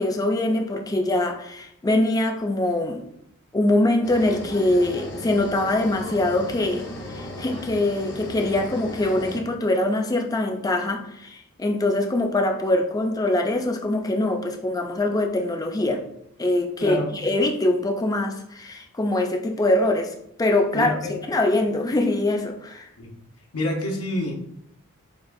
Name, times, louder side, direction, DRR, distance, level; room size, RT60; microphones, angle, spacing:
voice 1, 0.0-3.0 3.5-16.0 16.4-20.1 20.4-21.0 21.3-22.9, left 1 dB, 15° left, 3 dB, 0.4 m, -23 dB
sound 1, 4.0-9.4, left 1 dB, 50° left, 0.9 m, -36 dB
voice 2, 16.8-17.1 20.7-21.2 23.0-23.1 23.5-24.4, left 1 dB, 80° left, 0 dB, 0.9 m, -27 dB
6.7 x 2.3 x 2.6 m, 0.73 s
head